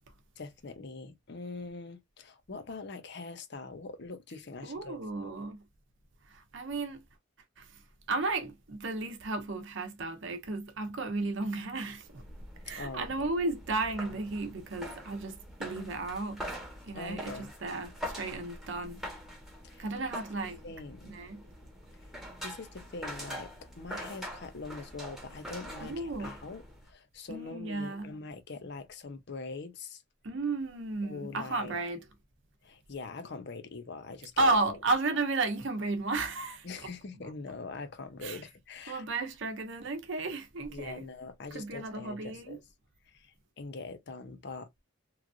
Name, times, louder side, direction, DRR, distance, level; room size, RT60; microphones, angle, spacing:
voice 1, 0.4-5.4 12.8-13.3 16.9-17.5 19.6-19.8 20.6-21.2 22.4-30.0 31.0-31.7 32.6-34.8 36.6-39.0 40.7-42.6 43.1-44.7, left 3 dB, 55° left, 0.6 m, -43 dB
voice 2, 4.6-5.6 6.3-7.0 7.6-7.7 8.1-12.2 12.6-16.4 16.8-19.0 19.8-20.6 21.0-21.5 25.8-26.4 27.3-28.1 30.2-32.0 34.4-36.9 37.2-37.3 38.2-38.4 38.9-41.0 41.5-42.6, right 3 dB, 65° right, 0.7 m, -33 dB
sound 1, 12.0-26.9, equal, ahead, 1.0 m, -44 dB
3.1 x 2.4 x 2.3 m
head